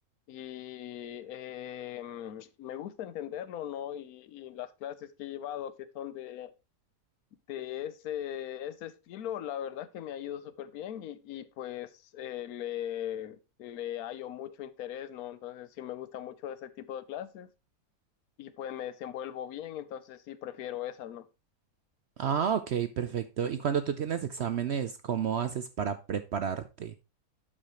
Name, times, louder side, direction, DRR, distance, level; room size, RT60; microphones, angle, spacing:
voice 1, 0.3-6.5 7.5-17.5 18.4-21.3, left 11 dB, 70° left, 1.1 m, -39 dB
voice 2, 22.2-26.9, right 8 dB, 65° right, 0.6 m, -31 dB
11.5 x 5.7 x 3.0 m
omnidirectional pair, 1.7 m